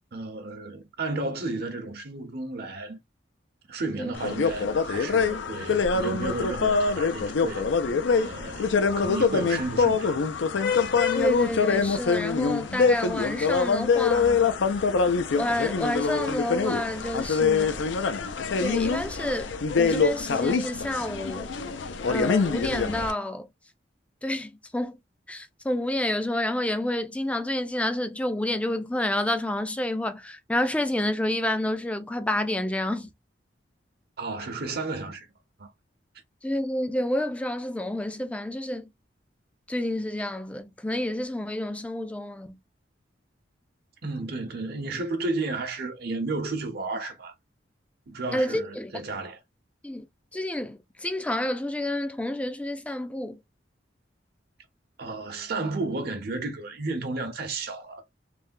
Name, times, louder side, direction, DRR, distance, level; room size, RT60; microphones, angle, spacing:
voice 1, 0.1-3.0 3.7-7.7 8.1-10.2 34.2-35.3 35.6-35.7 44.0-47.3 48.1-49.4 55.0-58.0, right 3 dB, 60° right, 0.9 m, -33 dB
sound 1, 4.2-23.1, left 5 dB, 80° left, 0.5 m, -24 dB
voice 2, 11.1-14.5 15.3-17.8 18.6-21.5 22.1-23.5 24.2-25.0 25.3-33.1 36.4-38.9 39.7-42.6 48.3-48.9 49.8-50.0 50.3-53.4, left 1 dB, 5° left, 0.4 m, -29 dB
3.3 x 2.2 x 2.5 m
head